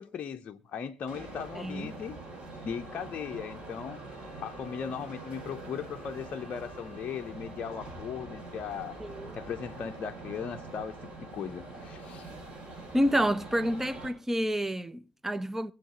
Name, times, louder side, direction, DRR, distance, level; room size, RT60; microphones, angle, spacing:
voice 1, 0.0-2.2 2.6-4.0 4.4-9.0 9.3-12.3, left 7 dB, 40° left, 0.7 m, -38 dB
sound 1, 1.1-14.1, right 2 dB, 25° right, 6.4 m, -44 dB
voice 2, 1.5-1.9 9.0-9.4 12.9-15.7, equal, 10° right, 0.7 m, -29 dB
23.5 x 7.8 x 2.9 m
figure-of-eight pair, 55°, 4 cm